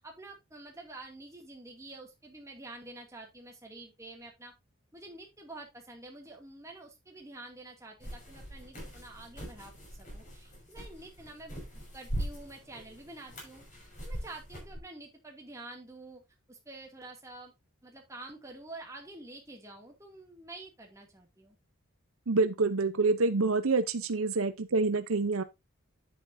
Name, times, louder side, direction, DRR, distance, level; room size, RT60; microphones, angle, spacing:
voice 1, 0.0-4.5 4.9-13.6 14.0-16.2 16.5-17.5 17.8-21.6, right 2 dB, 15° right, 2.4 m, -48 dB
sound 1, 8.0-14.8, right 1 dB, 35° left, 6.0 m, -41 dB
voice 2, 22.3-25.4, right 3 dB, 75° right, 0.8 m, -27 dB
9.7 x 8.9 x 2.7 m
head